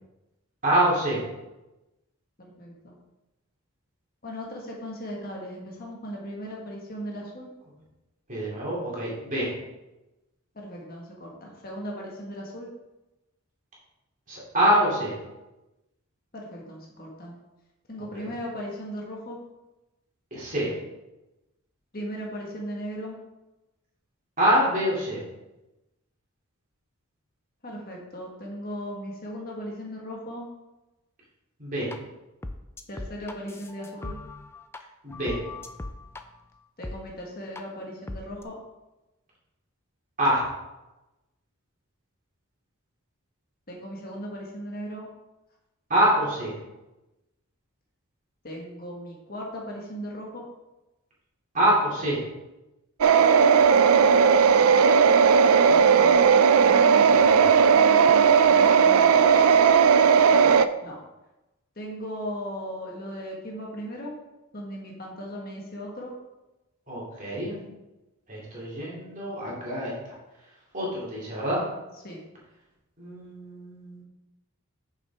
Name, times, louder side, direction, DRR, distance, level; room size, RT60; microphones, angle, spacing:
voice 1, 0.6-1.2 8.3-9.5 14.3-15.2 18.1-18.3 20.3-20.7 24.4-25.2 31.6-31.9 35.0-35.4 40.2-40.4 45.9-46.5 51.5-52.2 57.3-57.5 66.9-67.5 68.3-69.9 70.7-71.6 73.0-74.0, right 1 dB, 35° right, -6 dB, 2.8 m, -25 dB
voice 2, 2.4-3.0 4.2-7.5 10.5-12.7 16.3-17.4 17.9-19.4 21.9-23.2 27.6-30.5 32.9-34.1 36.8-38.6 43.7-45.1 48.4-50.4 55.4-56.2 56.7-59.7 60.3-60.5 60.8-61.0 61.7-64.1 64.5-66.1 72.0-72.2, equal, 40° left, -2 dB, 1.6 m, -37 dB
sound 1, 31.9-32.0 32.4-34.8 35.1-36.2 36.8-37.0 37.6-37.7 38.1-38.4, left 2 dB, 10° left, 0.4 m, -38 dB
sound 2, 53.0-60.7, right 6 dB, 75° right, 0.4 m, -17 dB
8.8 x 6.4 x 3.6 m, 1.0 s
head